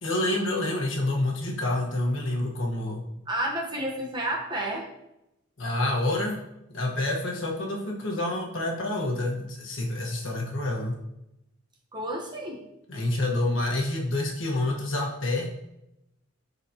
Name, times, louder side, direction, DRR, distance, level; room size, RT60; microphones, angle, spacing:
voice 1, 0.0-3.0 5.6-6.4 6.7-11.0 12.9-15.5, left 1 dB, 70° left, -1 dB, 1.3 m, -28 dB
voice 2, 3.3-4.9 11.9-12.6, right 1 dB, 20° right, -1 dB, 1.0 m, -30 dB
12.0 x 4.0 x 2.9 m, 0.88 s
head